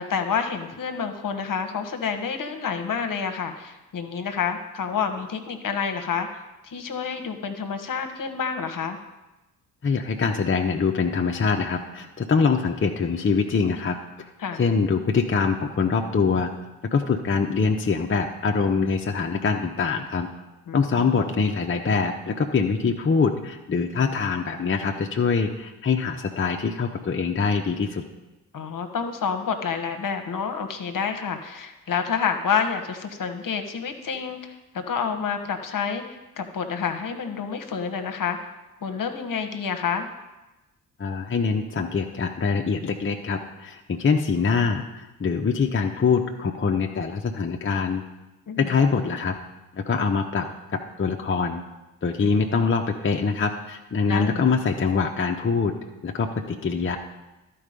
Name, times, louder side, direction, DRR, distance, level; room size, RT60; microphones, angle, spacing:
voice 1, 0.0-6.3 6.6-9.0 14.4-14.6 20.7-21.1 28.5-38.4 38.8-40.1 48.5-48.7 54.1-54.4, left 6 dB, 50° left, 6 dB, 1.2 m, -28 dB
voice 2, 9.8-14.3 14.6-16.5 16.9-20.3 20.7-28.0 41.0-48.0 48.6-49.3 49.7-50.5 51.0-51.6 52.0-55.7 56.0-57.0, left 5 dB, 30° left, 3 dB, 0.9 m, -24 dB
12.0 x 4.7 x 5.1 m, 1.0 s
hypercardioid pair, 40°, 42 cm